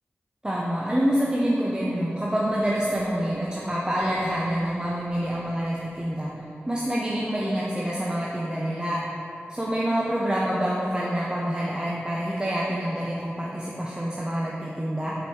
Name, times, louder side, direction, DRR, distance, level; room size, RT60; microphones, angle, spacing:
voice 1, 0.4-6.3 6.7-9.0 9.5-15.2, equal, 20° right, -5 dB, 0.6 m, -27 dB
5.0 x 4.1 x 4.6 m, 2.8 s
cardioid pair, 50°, 4 cm